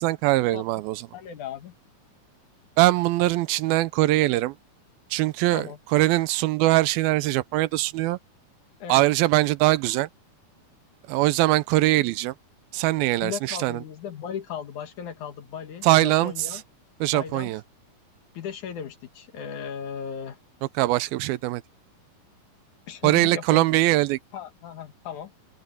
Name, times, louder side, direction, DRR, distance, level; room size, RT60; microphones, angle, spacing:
voice 1, 0.0-1.0 2.8-4.6 5.1-8.2 8.9-10.1 11.1-12.3 12.7-13.8 15.8-16.3 17.0-17.6 20.8-21.6 23.0-24.2, right 18 dB, 85° right, 2.5 m, -22 dB
voice 2, 1.1-1.7 5.5-5.8 8.8-9.1 13.2-16.6 17.1-17.5 18.3-20.4 22.9-23.7 24.3-25.3, left 8 dB, 60° left, 2.8 m, -36 dB
omnidirectional pair, 4.2 m